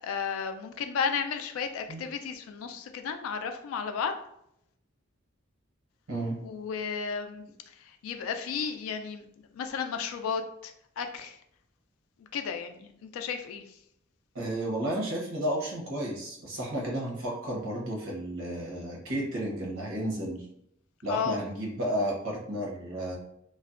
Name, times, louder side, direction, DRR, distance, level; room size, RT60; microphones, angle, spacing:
voice 1, 0.0-4.1 6.4-9.3 9.5-11.4 12.2-13.8 21.1-21.4, left 6 dB, 90° left, 7 dB, 0.3 m, -33 dB
voice 2, 14.3-20.4 21.0-23.2, right 1 dB, 80° right, -3 dB, 0.8 m, -32 dB
2.5 x 2.0 x 2.4 m, 0.75 s
head